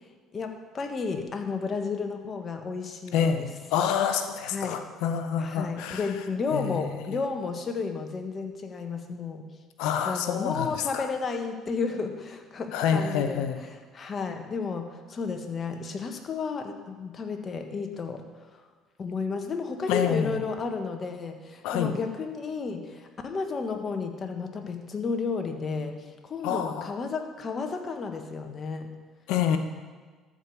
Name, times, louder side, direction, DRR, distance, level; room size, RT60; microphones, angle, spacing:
voice 1, 0.3-3.5 4.4-4.8 5.4-9.5 10.0-18.2 18.5-18.6 19.0-29.0, left 4 dB, 40° left, 5 dB, 1.5 m, -32 dB
voice 2, 3.1-6.1 6.5-6.8 9.8-11.1 12.7-13.6 19.9-20.4 21.6-21.9 26.4-26.9 29.3-29.6, left 8 dB, 75° left, 8 dB, 0.9 m, -27 dB
13.5 x 5.2 x 7.0 m, 1.5 s
hypercardioid pair, 65°, 0 cm